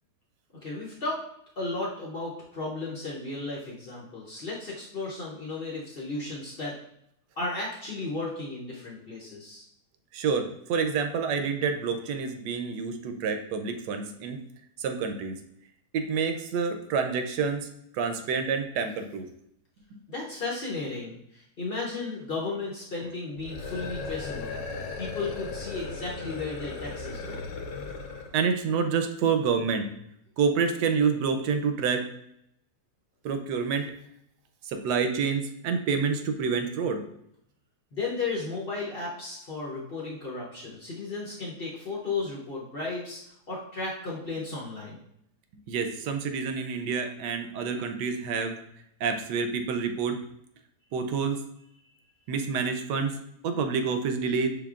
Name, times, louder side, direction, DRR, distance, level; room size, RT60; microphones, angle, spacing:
voice 1, 0.6-1.2 1.6-6.8 7.4-9.6 20.1-24.6 25.0-27.4 37.9-45.0, left 3 dB, 50° left, -5 dB, 0.7 m, -34 dB
voice 2, 10.1-14.4 14.8-15.4 15.9-17.7 17.9-19.3 19.9-20.0 28.3-29.9 30.4-32.0 33.2-33.9 34.6-37.0 45.7-48.5 49.0-50.2 50.9-51.4 52.3-53.1 53.4-54.5, right 5 dB, 85° right, 6 dB, 1.2 m, -28 dB
sound 1, 23.4-28.4, left 4 dB, 90° left, 1.2 m, -36 dB
5.8 x 3.2 x 2.4 m, 0.74 s
omnidirectional pair, 1.8 m